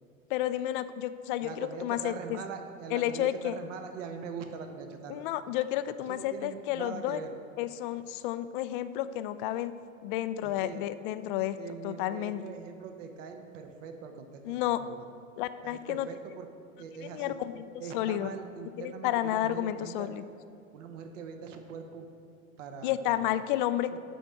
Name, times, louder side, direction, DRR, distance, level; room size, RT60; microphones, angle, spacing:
voice 1, 0.3-2.4 2.9-3.6 5.1-7.2 7.6-9.7 10.0-11.6 11.8-12.4 14.5-14.8 15.4-16.1 17.1-17.7 17.9-18.3 18.8-20.2 22.8-23.9, left 13 dB, 40° left, 13 dB, 0.4 m, -31 dB
voice 2, 1.4-5.2 6.1-7.3 10.4-10.8 11.6-15.1 15.6-16.5 16.8-17.4 17.8-20.1 20.7-22.1 22.6-23.4 23.9-24.0, right 6 dB, 60° right, 5 dB, 1.1 m, -42 dB
11.0 x 4.4 x 6.4 m, 2.3 s
figure-of-eight pair, 85°, 42 cm